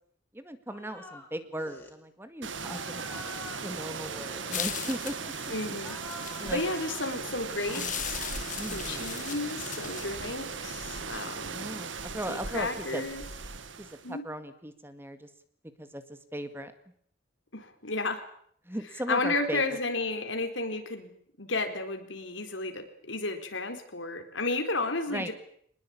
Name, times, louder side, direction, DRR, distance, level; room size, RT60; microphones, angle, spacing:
voice 1, 0.3-5.3 6.4-6.6 8.5-9.1 11.5-13.1 13.8-15.3 15.8-16.7 18.7-19.8 25.1-25.3, right 1 dB, 10° right, 10 dB, 1.9 m, -38 dB
sound 1, 0.7-1.3 1.6-1.9 2.5-5.3 5.7-7.1 7.6-8.7 9.8-11.6, left 1 dB, 10° left, 4.7 m, -47 dB
sound 2, 2.4-14.1, right 5 dB, 85° right, 2.0 m, -38 dB
sound 3, 4.5-6.7 7.6-10.6, left 10 dB, 45° left, 1.6 m, -38 dB
voice 2, 5.5-6.0 6.4-8.3 8.7-11.7 12.3-13.2 14.0-14.2 17.5-18.2 19.1-21.1 21.4-25.3, left 2 dB, 85° left, 6 dB, 4.1 m, -32 dB
24.5 x 20.5 x 8.7 m, 0.64 s
head